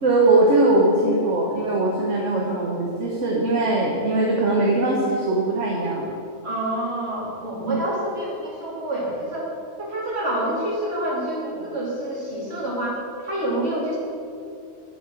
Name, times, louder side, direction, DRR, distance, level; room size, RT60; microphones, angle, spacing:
voice 1, 0.0-6.0 7.6-7.8, right 2 dB, 70° right, -2 dB, 1.6 m, -20 dB
voice 2, 6.4-9.5 9.8-14.0, right 1 dB, 55° right, -7 dB, 3.3 m, -27 dB
9.9 x 7.0 x 7.4 m, 2.6 s
omnidirectional pair, 1.3 m